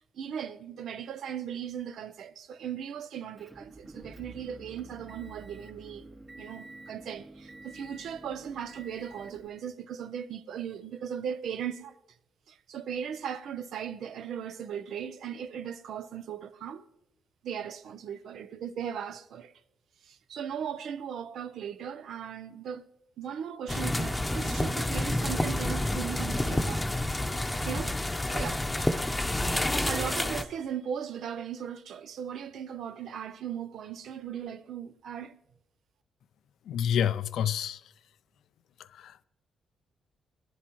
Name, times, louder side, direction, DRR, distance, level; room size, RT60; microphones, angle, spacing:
voice 1, 0.1-6.1 6.4-12.0 12.5-16.8 17.4-19.5 20.0-22.8 23.2-26.9 27.6-27.9 28.3-28.7 29.8-35.4, right 8 dB, 75° right, 0.6 m, -38 dB
Motor vehicle (road) / Engine, 3.4-9.5, right 2 dB, 30° right, 3.1 m, -49 dB
sound 1, 23.7-30.4, left 1 dB, 15° left, 0.8 m, -29 dB
voice 2, 36.6-37.8 38.8-39.2, left 9 dB, 75° left, 0.4 m, -29 dB
19.5 x 10.5 x 3.0 m
supercardioid pair, 60°, 0 cm